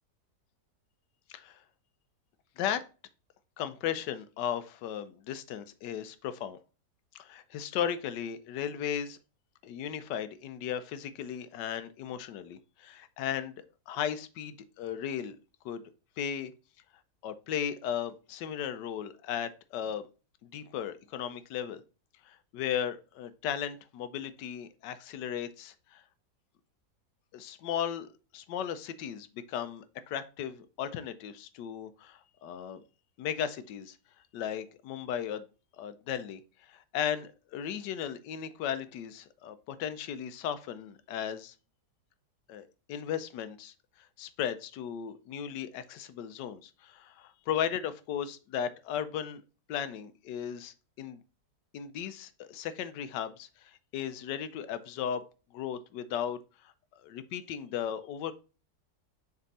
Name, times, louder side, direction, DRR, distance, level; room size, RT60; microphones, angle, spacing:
voice 1, 3.6-6.6 7.1-9.2 9.6-13.5 13.9-15.4 15.6-15.8 16.2-16.5 17.2-20.1 20.5-21.8 22.2-26.0 27.3-32.8 33.2-34.0 34.3-35.4 35.8-41.5 42.5-43.7 44.2-49.4 49.7-51.2 51.7-55.2 55.5-56.7 57.0-58.3, left 9 dB, 90° left, 12 dB, 1.3 m, -36 dB
6.7 x 3.5 x 4.0 m, 0.33 s
omnidirectional pair, 1.8 m